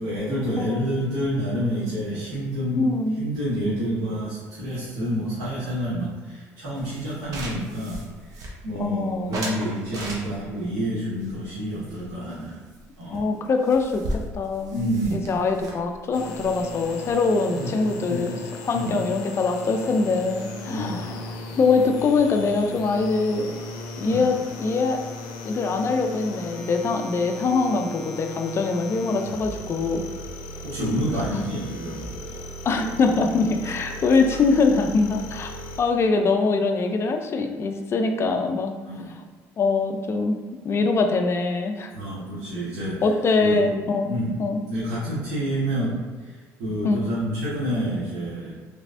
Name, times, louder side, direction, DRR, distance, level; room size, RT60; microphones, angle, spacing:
voice 1, 0.0-8.1 8.6-12.6 13.0-13.3 14.7-15.4 17.5-17.7 18.0-18.3 18.7-19.0 20.7-21.1 24.0-24.2 30.6-32.1 38.8-39.1 41.9-43.0 43.4-43.7 44.1-44.3 44.7-46.3 46.6-48.5, equal, 80° right, -11 dB, 1.3 m, -28 dB
voice 2, 0.6-1.2 2.8-3.2 8.8-9.4 13.1-18.4 18.6-23.6 24.0-25.0 25.4-30.1 31.3-31.4 32.6-38.8 39.6-40.4 40.6-41.9 43.0-44.1 44.4-44.6 46.8-47.0, left 4 dB, 40° left, 5 dB, 0.5 m, -23 dB
sound 1, 6.8-8.9 9.3-10.6 11.2-12.4 12.7-12.9 13.1-13.2 13.4-17.3, right 1 dB, 55° right, 0.9 m, -36 dB
sound 2, 16.1-35.8, left 2 dB, 80° left, 0.6 m, -37 dB
3.3 x 3.2 x 2.6 m, 1.4 s
supercardioid pair, 80°, 7 cm